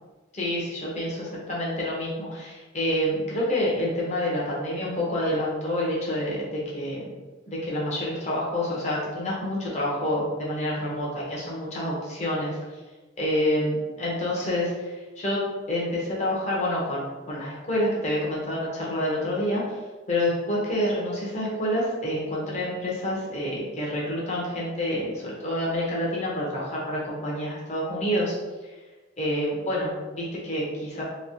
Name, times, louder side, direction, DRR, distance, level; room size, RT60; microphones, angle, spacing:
voice 1, 0.3-7.1 7.5-12.6 13.2-19.6 20.1-28.3 28.6-28.7 29.2-31.0, left 1 dB, 35° left, -5 dB, 0.9 m, -28 dB
3.1 x 2.8 x 2.8 m, 1.2 s
head